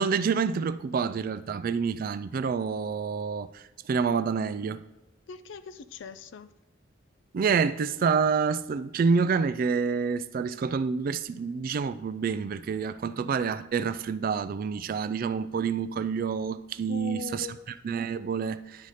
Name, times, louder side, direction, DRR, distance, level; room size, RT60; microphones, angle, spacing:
voice 1, 0.0-4.8 7.3-17.5 17.8-18.9, right 5 dB, 50° right, 0.3 m, -28 dB
voice 2, 5.3-6.5 16.9-17.7, left 6 dB, 75° left, 0.4 m, -40 dB
10.5 x 4.8 x 4.1 m
head